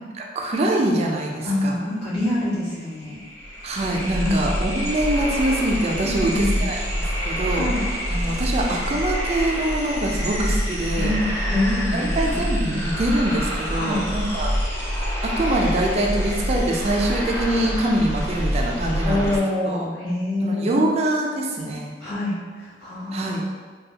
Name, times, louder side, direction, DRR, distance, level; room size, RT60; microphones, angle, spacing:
voice 1, 0.4-1.8 3.6-7.7 8.1-11.1 11.9-14.6 15.2-19.3 19.7-19.8 20.4-21.9 23.1-23.4, right 1 dB, 35° right, 0 dB, 0.3 m, -24 dB
voice 2, 1.4-3.2 4.2-4.4 6.0-6.6 7.5-7.8 10.9-12.8 13.7-14.1 19.0-20.9 22.0-23.4, left 1 dB, 80° left, -11 dB, 1.5 m, -26 dB
sound 1, 2.4-2.5 2.7-19.4, equal, 15° left, 0.6 m, -26 dB
3.3 x 2.2 x 2.7 m, 1.5 s
head